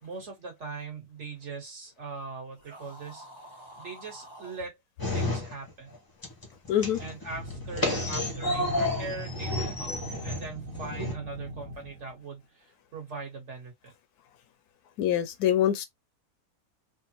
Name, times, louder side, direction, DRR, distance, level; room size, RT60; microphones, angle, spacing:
voice 1, 0.0-3.3 3.8-4.8 5.1-6.0 7.0-9.9 10.2-13.9, right 4 dB, 50° right, 1.6 m, -40 dB
sound 1, 2.5-4.6, equal, 20° right, 1.0 m, -48 dB
sound 2, 5.0-6.0 6.2-11.1, left 2 dB, 20° left, 0.6 m, -31 dB
voice 2, 6.7-7.0 15.0-15.9, left 11 dB, 80° left, 1.1 m, -24 dB
sound 3, 7.3-12.3, right 1 dB, 80° right, 1.7 m, -40 dB
3.4 x 2.1 x 2.8 m
omnidirectional pair, 1.7 m